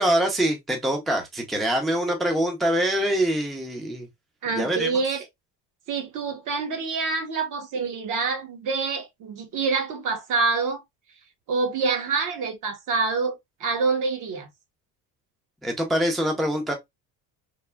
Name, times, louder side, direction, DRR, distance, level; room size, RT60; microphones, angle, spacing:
voice 1, 0.0-4.1 4.6-4.9 15.6-16.7, right 1 dB, ahead, 0.5 m, -24 dB
voice 2, 4.4-5.2 5.9-10.8 11.5-14.5, right 4 dB, 55° right, 0.9 m, -26 dB
3.3 x 2.1 x 2.2 m
cardioid pair, 120°, 39 cm